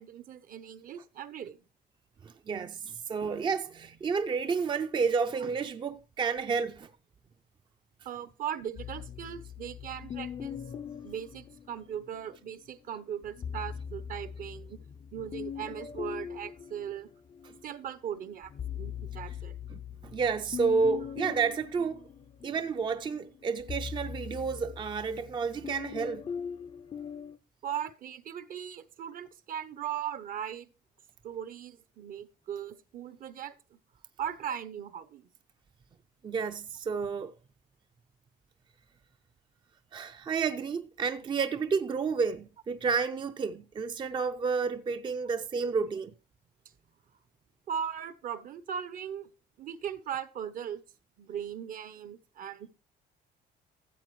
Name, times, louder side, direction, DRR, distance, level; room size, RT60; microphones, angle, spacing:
voice 1, 0.0-1.6 8.0-10.6 11.0-14.8 15.1-17.1 17.6-19.6 27.6-30.7 31.2-33.8 34.2-35.3 45.6-45.7 47.7-49.3 49.6-50.8 51.2-52.7, right 9 dB, 55° right, 0.8 m, -38 dB
voice 2, 2.2-6.9 17.4-17.5 19.7-22.0 22.4-26.3 36.2-37.3 39.9-46.1, right 5 dB, 30° right, 0.5 m, -31 dB
sound 1, 8.8-12.3 13.2-17.7 18.1-27.4, left 7 dB, 30° left, 0.5 m, -41 dB
13.5 x 7.5 x 3.1 m
cardioid pair, 110°, 17 cm